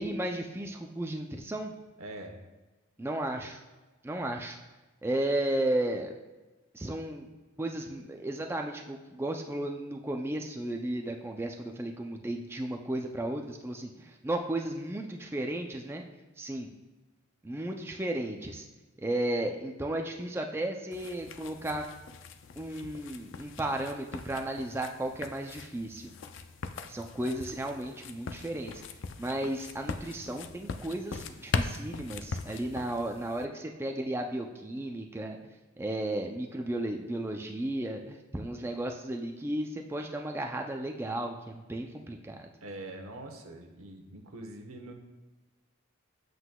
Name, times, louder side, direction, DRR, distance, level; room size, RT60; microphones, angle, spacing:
voice 1, 0.0-1.7 3.0-3.6 4.0-4.6 5.0-6.1 6.7-7.3 7.6-16.0 16.4-16.7 17.4-18.7 19.0-21.8 22.6-26.1 26.9-28.8 29.2-35.4 35.8-42.5, right 1 dB, 10° right, 3 dB, 0.3 m, -34 dB
voice 2, 2.0-2.3 42.6-44.9, right 1 dB, 85° right, 4 dB, 1.0 m, -43 dB
sound 1, 20.9-33.4, left 4 dB, 60° left, 0.4 m, -40 dB
7.9 x 7.6 x 2.3 m, 1.2 s
head